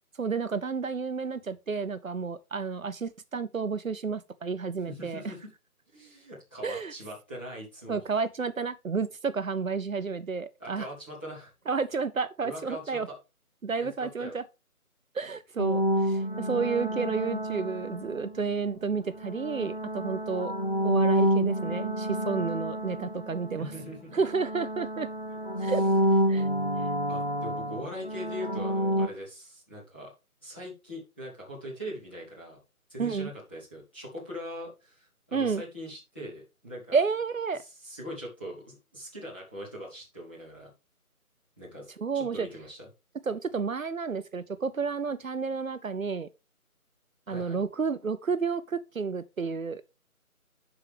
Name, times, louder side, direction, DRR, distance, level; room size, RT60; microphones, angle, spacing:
voice 1, 0.2-5.2 6.6-6.9 7.9-10.9 11.7-13.1 13.6-14.4 15.1-20.5 20.8-23.7 24.1-25.1 25.6-25.8 26.3-26.5 33.0-33.3 35.3-35.6 36.9-37.6 42.0-42.5 43.3-46.3 47.3-49.8, right 5 dB, 65° right, 0.7 m, -31 dB
voice 2, 4.9-5.5 5.9-8.0 10.6-11.5 12.4-13.2 13.8-14.4 23.6-24.2 25.5-25.7 27.1-30.1 30.4-32.6 32.9-37.0 37.5-40.7 41.6-41.9 42.1-42.9 47.3-47.6, equal, 5° left, 1.1 m, -41 dB
sound 1, 15.6-18.5 19.2-24.0 24.2-29.1, equal, 40° left, 0.5 m, -28 dB
11.0 x 4.8 x 3.4 m
figure-of-eight pair, 160°, 44 cm